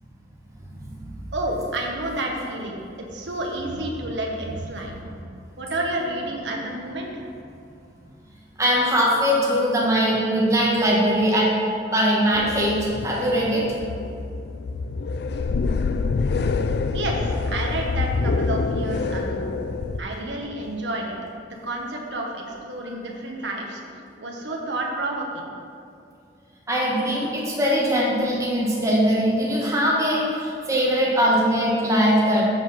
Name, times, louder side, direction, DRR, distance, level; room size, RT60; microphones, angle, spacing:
voice 1, 1.3-4.9 5.6-7.2 16.9-17.2 17.4-19.5 20.0-21.1 21.5-23.8 24.2-25.5, right 1 dB, 80° right, 0 dB, 1.3 m, -30 dB
voice 2, 8.6-11.5 11.9-13.6 26.7-32.5, equal, 20° right, -5 dB, 1.7 m, -21 dB
sound 1, 12.3-20.0, left 4 dB, 60° left, 0.4 m, -26 dB
8.1 x 5.2 x 5.9 m, 2.5 s
head